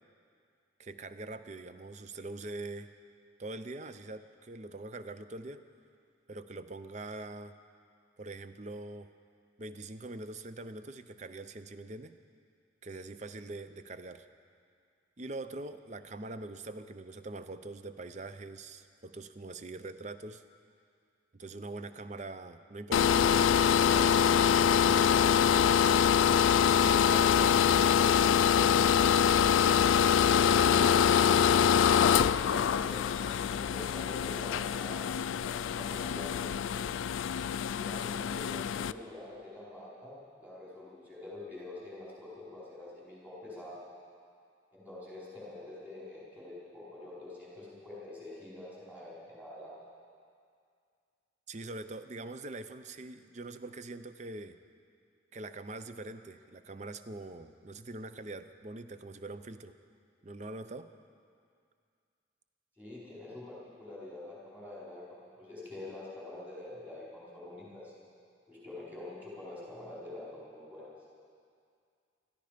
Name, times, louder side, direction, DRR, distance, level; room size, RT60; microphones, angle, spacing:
voice 1, 0.8-2.9 3.4-5.6 6.3-7.5 8.2-9.1 9.6-12.1 12.8-14.3 15.2-20.4 21.3-24.2 24.8-25.8 26.8-29.8 32.5-32.6 51.5-54.6 55.3-59.7 60.2-60.9, right 2 dB, 35° right, 11 dB, 0.5 m, -43 dB
sound 1, 22.9-38.9, left 8 dB, 85° left, 0.3 m, -25 dB
voice 2, 31.8-36.8 37.8-43.8 44.7-49.7 62.8-67.9 68.5-70.9, left 2 dB, 10° right, -9 dB, 4.8 m, -46 dB
20.0 x 13.5 x 5.1 m, 2.3 s
head